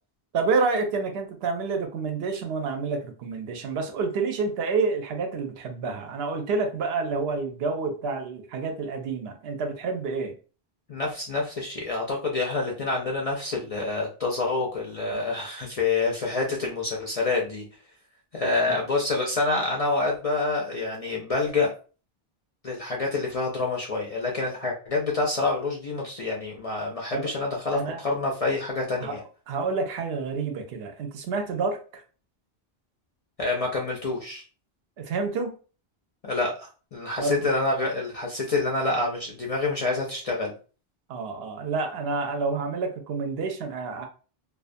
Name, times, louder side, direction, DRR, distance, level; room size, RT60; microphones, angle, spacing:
voice 1, 0.3-10.3 18.7-18.8 27.1-27.3 27.7-28.0 29.0-29.2 29.5-32.0 35.0-35.5 37.2-37.5 41.1-44.1, right 4 dB, 80° right, 5 dB, 0.8 m, -28 dB
voice 2, 10.9-17.6 18.3-21.7 22.6-29.2 33.4-34.4 36.2-40.5, left 3 dB, 55° left, -1 dB, 0.4 m, -27 dB
2.4 x 2.2 x 2.5 m, 0.37 s
omnidirectional pair, 1.0 m